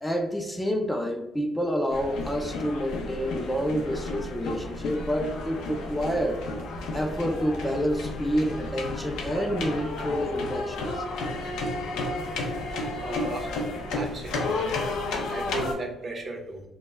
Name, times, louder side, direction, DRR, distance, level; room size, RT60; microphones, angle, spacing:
voice 1, 0.0-6.4 6.9-11.0, equal, 10° left, 2 dB, 0.3 m, -28 dB
sound 1, 1.9-15.7, left 2 dB, 90° left, 0.4 m, -32 dB
voice 2, 13.0-13.5 13.9-14.7 15.3-16.6, right 2 dB, 45° right, 2 dB, 0.6 m, -35 dB
2.1 x 2.0 x 3.3 m, 0.89 s
cardioid pair, 90°, 0 cm